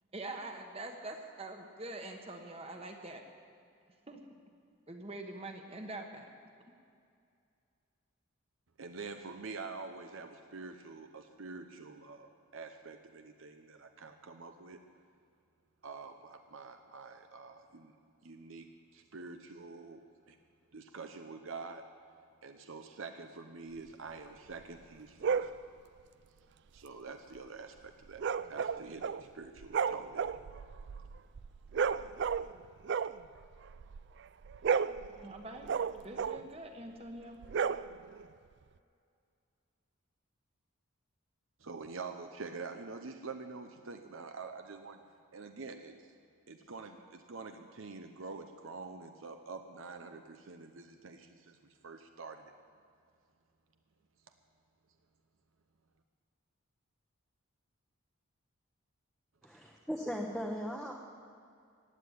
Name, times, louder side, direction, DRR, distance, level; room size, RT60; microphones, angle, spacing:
voice 1, 0.1-3.2 4.1-4.3 4.9-6.3 35.1-35.7 36.0-37.4, right 2 dB, 25° right, 4 dB, 1.3 m, -44 dB
voice 2, 8.8-14.8 15.8-17.9 18.2-20.4 20.7-21.8 22.4-25.5 26.7-28.2 28.5-30.3 41.6-45.0 45.3-46.0 46.5-51.6 51.8-52.5, right 4 dB, 70° right, 6 dB, 0.8 m, -46 dB
sound 1, 25.2-25.6 28.2-29.3 29.6-32.6 32.8-34.1 34.4-36.5 37.4-38.2, right 6 dB, 55° right, 0.3 m, -33 dB
voice 3, 59.4-60.9, equal, ahead, -1 dB, 1.0 m, -38 dB
16.0 x 8.6 x 9.6 m, 2.3 s
head